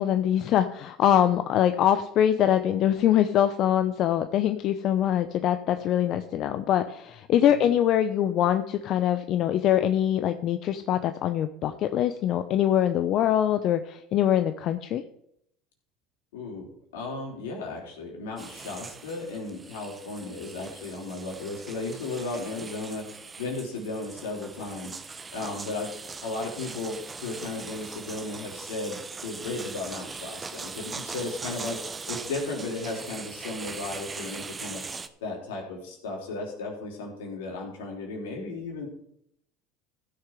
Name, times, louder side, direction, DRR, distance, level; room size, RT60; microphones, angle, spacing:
voice 1, 0.0-15.0, left 10 dB, 55° left, 9 dB, 0.7 m, -23 dB
voice 2, 16.3-25.0 25.3-25.9 26.2-31.8 32.1-34.8 35.2-38.9, left 3 dB, 85° left, 0 dB, 3.9 m, -35 dB
sound 1, 18.4-35.1, right 4 dB, 25° right, 1.1 m, -40 dB
15.0 x 6.7 x 4.9 m, 0.73 s
hypercardioid pair, 80°, 0 cm